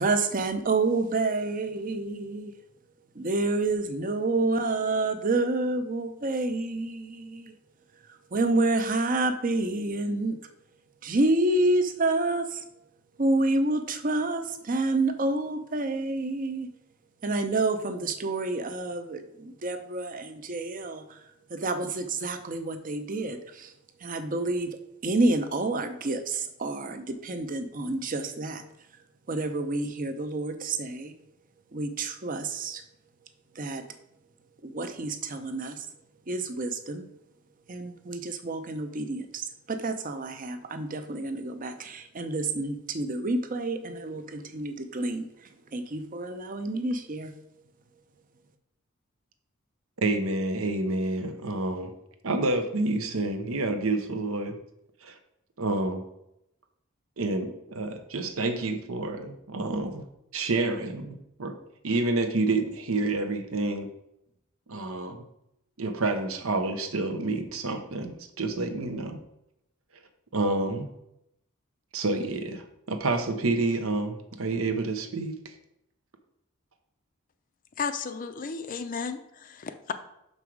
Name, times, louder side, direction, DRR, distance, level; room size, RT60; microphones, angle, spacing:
voice 1, 0.0-2.5 3.2-7.5 8.3-10.4 11.0-12.6 13.2-16.7 17.2-21.2 21.5-23.7 24.0-24.8 25.0-28.6 29.3-31.1 31.7-32.8 33.6-33.8 34.6-35.9 36.3-37.1 37.7-45.3 45.7-47.3, right 2 dB, 40° right, 8 dB, 0.6 m, -28 dB
voice 2, 50.0-51.9 52.2-54.6 55.0-55.2 55.6-56.0 57.2-60.1 60.3-61.6 61.8-63.9 64.7-65.2 65.8-69.2 70.3-70.9 71.9-75.5, right 2 dB, 80° right, 7 dB, 0.9 m, -28 dB
voice 3, 77.8-79.9, left 5 dB, 40° left, 9 dB, 0.5 m, -33 dB
6.1 x 5.4 x 4.7 m, 0.82 s
head